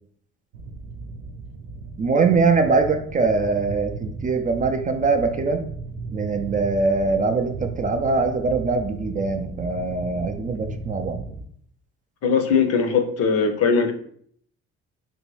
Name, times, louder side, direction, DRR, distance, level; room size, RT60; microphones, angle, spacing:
sound 1, 0.5-11.4, right 3 dB, 85° right, 0.6 m, -36 dB
voice 1, 2.0-5.6 6.1-11.2, right 4 dB, 30° right, 5 dB, 0.4 m, -22 dB
voice 2, 12.2-13.9, left 5 dB, 55° left, 5 dB, 0.6 m, -20 dB
2.9 x 2.6 x 3.1 m, 0.62 s
supercardioid pair, 65°, 29 cm